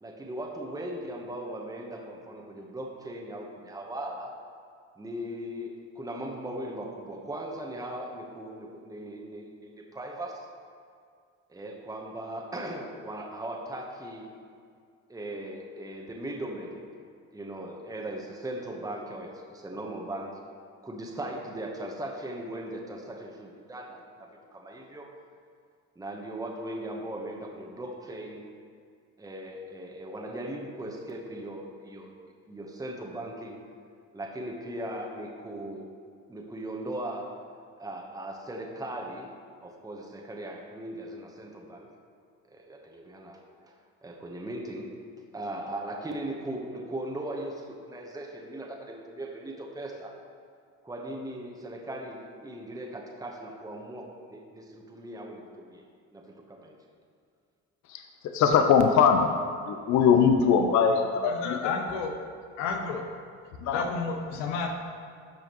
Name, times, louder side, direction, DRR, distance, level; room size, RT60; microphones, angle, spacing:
voice 1, 0.0-4.3 5.0-10.5 11.5-14.3 15.1-16.8 17.3-20.4 20.8-25.1 26.0-28.4 29.2-32.2 32.5-33.6 34.1-35.9 36.3-37.3 37.8-39.3 39.6-41.9 42.4-43.7 44.0-45.0 45.3-50.1 50.8-55.8 56.1-56.8, right 1 dB, 10° right, 0 dB, 1.0 m, -38 dB
voice 2, 57.9-59.4 59.7-61.6 63.6-63.8, left 6 dB, 55° left, 5 dB, 0.7 m, -22 dB
voice 3, 61.2-62.1 62.6-63.0 63.6-64.7, left 5 dB, 90° left, 4 dB, 1.0 m, -31 dB
12.5 x 5.0 x 3.0 m, 2.2 s
supercardioid pair, 85°, 35 cm